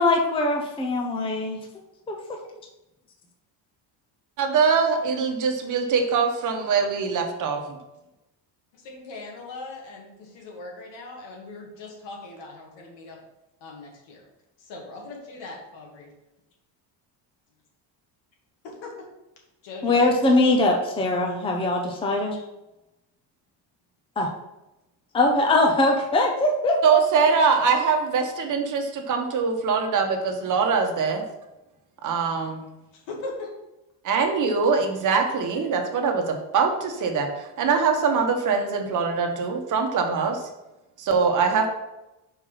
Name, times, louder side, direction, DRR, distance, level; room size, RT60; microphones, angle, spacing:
voice 1, 0.0-1.6 2.1-2.2 19.8-22.4 24.2-24.3 25.1-27.0, left 2 dB, 15° left, 1 dB, 0.6 m, -21 dB
voice 2, 4.4-7.8 26.8-31.2 32.0-32.6 34.0-40.4 41.0-41.7, right 5 dB, 45° right, 3 dB, 1.1 m, -23 dB
voice 3, 8.7-13.2 13.6-14.2 14.6-16.1 18.6-18.9 19.6-20.1 32.9-33.5, left 2 dB, 75° left, 0 dB, 2.2 m, -39 dB
5.5 x 4.5 x 5.7 m, 0.95 s
cardioid pair, 155°, 43 cm